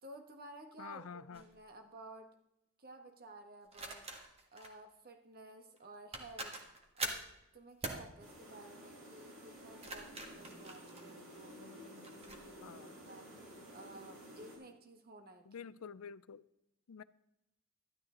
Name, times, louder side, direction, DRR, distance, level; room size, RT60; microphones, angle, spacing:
voice 1, 0.0-2.3 2.8-6.6 7.0-12.8 13.0-13.4 13.7-15.7, right 2 dB, 45° right, 1.4 m, -54 dB
voice 2, 0.8-1.4 12.6-12.9 15.5-16.4 16.9-17.0, left 6 dB, 75° left, 0.5 m, -48 dB
sound 1, 1.3-1.5 3.7-4.7 5.8-5.9 6.1-7.3 7.8-8.1 9.6-11.5 12.0-12.4, right 2 dB, 30° right, 1.6 m, -43 dB
sound 2, 8.2-14.6, equal, 70° right, 5.0 m, -53 dB
13.0 x 11.5 x 3.8 m
head